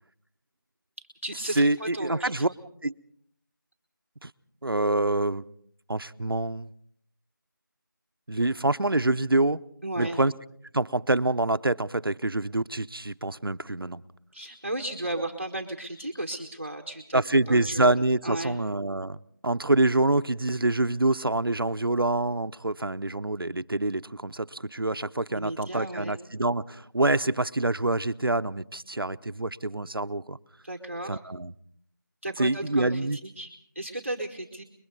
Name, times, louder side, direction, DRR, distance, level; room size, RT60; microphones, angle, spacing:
voice 1, 1.0-2.5 9.8-10.2 14.3-17.2 17.5-17.8 18.2-18.6 25.3-26.2 30.6-31.2 32.2-34.6, right 1 dB, 35° right, 6 dB, 1.4 m, -35 dB
voice 2, 1.6-2.5 2.8-2.9 4.2-4.3 4.6-5.4 5.9-6.7 8.3-9.6 10.0-10.3 10.7-14.0 17.1-19.2 19.4-30.4 31.1-31.5 32.4-33.2, right 2 dB, 90° right, 12 dB, 0.8 m, -26 dB
30.0 x 22.0 x 4.0 m, 0.65 s
figure-of-eight pair, 180°, 12 cm